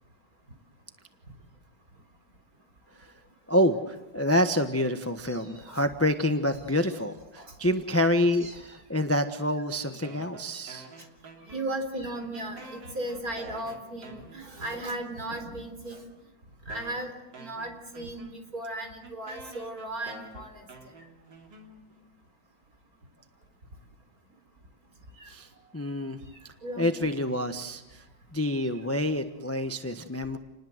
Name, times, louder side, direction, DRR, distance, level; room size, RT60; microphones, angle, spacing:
voice 1, 3.5-10.9 25.3-26.2 26.8-28.0 28.3-30.4, left 1 dB, 10° left, 7 dB, 1.0 m, -27 dB
voice 2, 5.2-5.9 7.4-7.5 8.4-8.6 10.5-10.6 11.5-16.0 16.7-17.1 17.4-18.3 18.5-20.7 25.2-25.3 26.6-27.1, right 1 dB, 50° right, 6 dB, 4.3 m, -36 dB
sound 1, 10.0-11.9 12.1-15.4 16.1-16.2 16.7-22.1, right 2 dB, 75° right, 3.8 m, -49 dB
29.0 x 20.5 x 8.0 m, 0.99 s
omnidirectional pair, 2.0 m